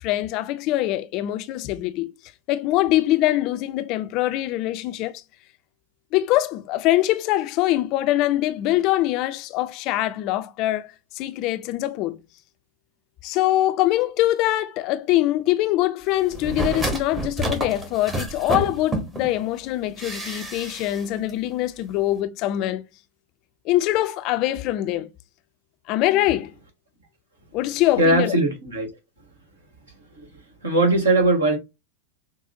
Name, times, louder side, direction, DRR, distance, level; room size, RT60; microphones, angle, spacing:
voice 1, 0.0-2.1 2.5-5.2 6.1-10.9 11.2-12.2 13.2-22.8 23.7-25.1 25.9-26.5 27.5-28.3, left 15 dB, 40° left, 0.5 m, -23 dB
sound 1, 16.3-19.3 20.0-21.0 21.3-21.4, right 1 dB, 15° right, 1.0 m, -29 dB
voice 2, 28.0-28.9 30.2-30.3 30.6-31.6, right 2 dB, 70° right, 1.7 m, -19 dB
5.8 x 2.2 x 2.7 m
figure-of-eight pair, 90°, 0 cm